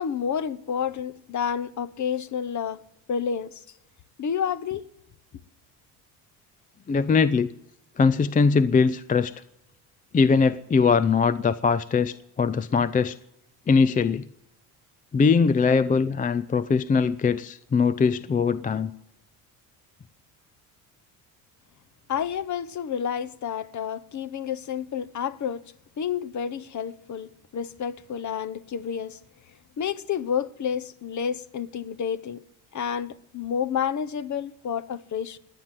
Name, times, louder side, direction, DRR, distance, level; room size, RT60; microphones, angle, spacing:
voice 1, 0.0-2.8 3.1-3.6 4.2-4.9 22.1-25.6 26.0-29.2 29.8-32.4 32.7-35.4, left 7 dB, 40° left, 1.0 m, -30 dB
voice 2, 6.9-7.5 8.0-9.3 10.1-13.2 13.7-14.2 15.1-18.9, left 5 dB, 20° left, 0.5 m, -21 dB
16.5 x 9.7 x 7.7 m
supercardioid pair, 70°, 44 cm